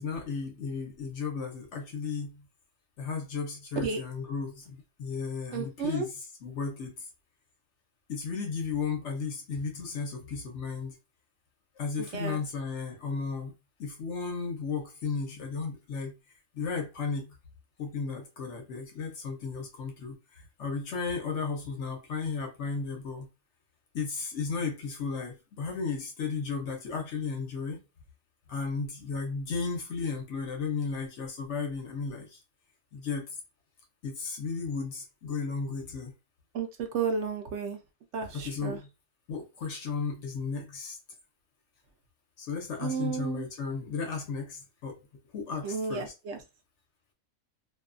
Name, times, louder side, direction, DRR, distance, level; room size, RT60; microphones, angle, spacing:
voice 1, 0.0-2.4 3.0-6.1 6.4-7.1 8.1-10.9 11.8-13.5 13.8-16.1 16.5-17.3 17.8-23.3 23.9-27.8 28.5-32.4 32.9-33.3 34.0-36.1 38.3-38.9 39.3-41.0 42.4-45.0 45.3-46.1, left 5 dB, 60° left, 1.0 m, -34 dB
voice 2, 5.5-6.1 12.0-12.4 36.5-37.8 38.1-38.8 42.8-43.4 45.6-46.4, right 5 dB, 65° right, 0.8 m, -32 dB
2.6 x 2.3 x 2.4 m
omnidirectional pair, 1.4 m